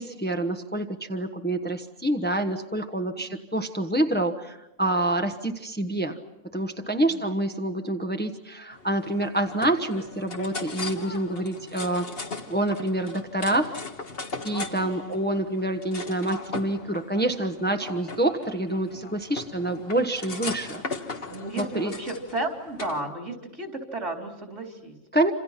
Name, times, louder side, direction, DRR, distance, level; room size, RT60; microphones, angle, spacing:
voice 1, 0.0-6.2 6.5-12.1 12.5-13.7 14.4-20.8 21.5-21.9 25.1-25.3, right 1 dB, 10° left, 5 dB, 1.2 m, -27 dB
sound 1, 8.7-23.0, left 3 dB, 50° left, 1.8 m, -38 dB
voice 2, 14.7-15.2 21.3-25.0, right 2 dB, 70° right, 3 dB, 3.9 m, -34 dB
28.0 x 27.5 x 5.8 m, 0.92 s
omnidirectional pair, 1.3 m